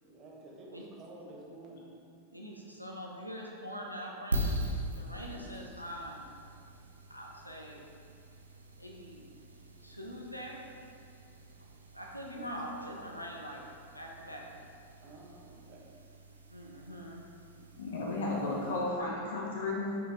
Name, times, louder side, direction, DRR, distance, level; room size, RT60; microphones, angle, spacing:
voice 1, 0.0-1.9 5.4-5.6 12.3-12.5 15.0-15.9, right 2 dB, 35° right, -3 dB, 1.7 m, -51 dB
voice 2, 2.3-4.6 4.9-6.3 7.1-7.8 8.8-9.3 9.8-10.7 11.6-11.7 11.9-13.7 13.9-14.5 16.5-17.2, equal, 90° left, -1 dB, 0.8 m, -43 dB
sound 1, 4.3-19.0, equal, 80° right, 0.7 m, -42 dB
voice 3, 17.8-20.0, left 2 dB, 65° left, -4 dB, 1.8 m, -33 dB
8.3 x 5.5 x 3.5 m, 2.3 s
figure-of-eight pair, 90°, 0 cm